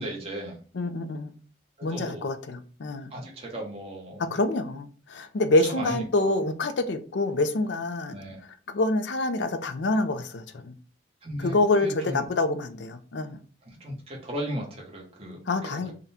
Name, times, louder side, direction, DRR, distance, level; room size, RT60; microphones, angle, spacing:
voice 1, 0.0-0.6 1.8-2.2 3.1-4.3 5.6-6.4 8.1-8.4 11.2-12.3 13.6-15.9, right 1 dB, 30° right, 1.0 m, -36 dB
voice 2, 0.7-1.3 1.8-3.1 4.3-8.2 8.4-10.7 11.4-13.4 15.5-15.9, left 2 dB, 70° left, 0.5 m, -26 dB
3.7 x 2.2 x 4.1 m
head